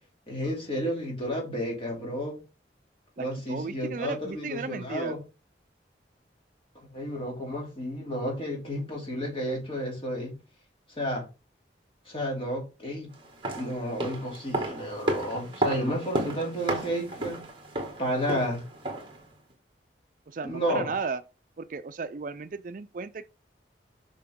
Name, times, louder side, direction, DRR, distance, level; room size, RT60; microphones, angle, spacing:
voice 1, 0.3-2.4 3.2-5.2 6.9-10.3 11.0-11.3 12.0-13.1 13.6-17.5 18.0-18.6 20.4-21.0, equal, 30° left, 2.7 m, -31 dB
voice 2, 3.2-5.1 20.3-21.2 21.6-23.3, right 4 dB, 45° right, 0.4 m, -35 dB
sound 1, 13.2-19.2 19.5-19.6, right 1 dB, 30° right, 1.9 m, -33 dB
6.6 x 5.8 x 3.6 m
head